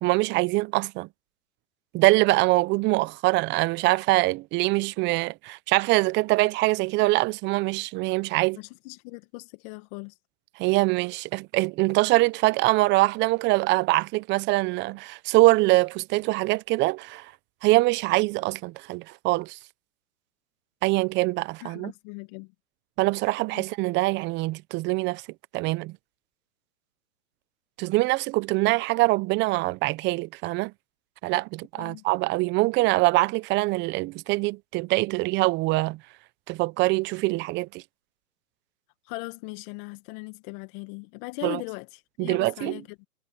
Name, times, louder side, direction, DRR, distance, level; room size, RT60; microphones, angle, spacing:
voice 1, 0.0-1.1 1.9-8.6 10.6-17.3 17.6-19.6 20.8-21.9 23.0-25.2 25.5-26.0 27.8-30.7 31.2-36.0 36.5-37.8 41.4-41.6 42.2-42.8, right 21 dB, 25° right, 0.9 m, -24 dB
voice 2, 8.6-10.1 21.6-22.5 23.5-23.6 31.8-32.0 39.0-43.1, left 27 dB, 35° left, 1.6 m, -39 dB
hypercardioid pair, 125°, 44 cm